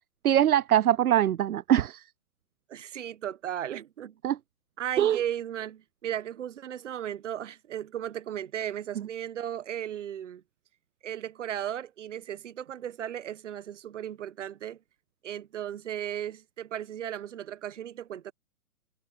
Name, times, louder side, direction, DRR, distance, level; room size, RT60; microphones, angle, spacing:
voice 1, 0.2-2.0 4.2-4.4 5.0-5.2, right 11 dB, 75° right, 0.6 m, -22 dB
voice 2, 2.7-4.2 4.8-10.4 11.0-14.8 15.2-18.3, right 10 dB, 55° right, 1.4 m, -36 dB
figure-of-eight pair, 135°, 44 cm